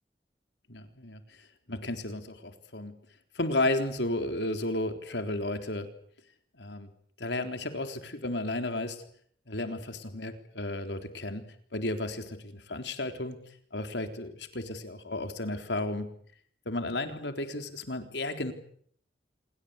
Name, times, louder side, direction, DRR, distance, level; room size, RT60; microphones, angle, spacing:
voice 1, 0.7-2.9 3.3-5.9 6.6-6.9 7.2-9.0 9.5-11.4 11.7-13.4 13.7-16.1 16.7-18.5, left 2 dB, 80° left, 7 dB, 3.9 m, -33 dB
27.5 x 22.0 x 8.3 m, 0.62 s
head